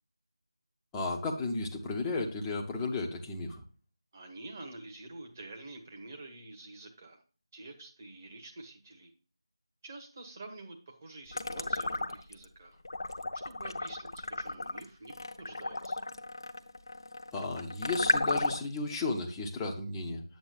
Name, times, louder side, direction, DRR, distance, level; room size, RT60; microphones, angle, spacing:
voice 1, 0.9-3.6 17.3-20.2, left 3 dB, 10° left, -1 dB, 0.6 m, -34 dB
voice 2, 4.1-7.2 7.5-9.1 9.8-12.8 13.4-16.0, right 2 dB, 30° right, 3 dB, 1.4 m, -48 dB
sound 1, 11.3-12.4 12.8-18.8, left 2 dB, 50° left, 0.7 m, -34 dB
8.7 x 7.5 x 2.4 m, 0.38 s
figure-of-eight pair, 165°, 3 cm